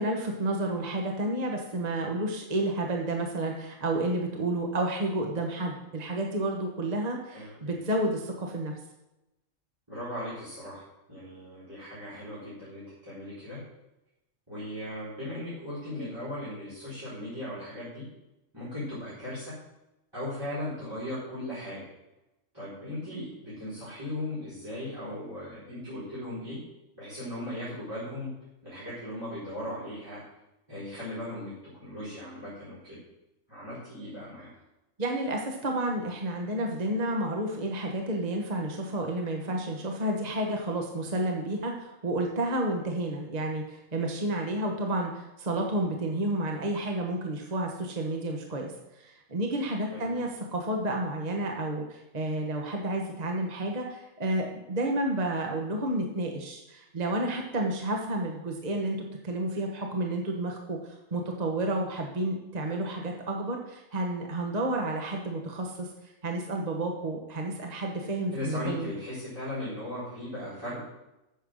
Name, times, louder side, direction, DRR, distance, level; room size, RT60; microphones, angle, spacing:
voice 1, 0.0-8.7 35.0-68.9, right 1 dB, 35° right, 1 dB, 1.2 m, -31 dB
voice 2, 9.9-13.6 14.5-18.1 18.5-19.6 20.1-21.9 22.5-26.6 27.0-28.3 28.6-30.2 30.7-33.0 33.5-34.5 49.9-50.2 68.3-70.8, left 1 dB, 20° right, -11 dB, 4.6 m, -37 dB
9.0 x 7.1 x 6.3 m, 0.94 s
omnidirectional pair, 1.4 m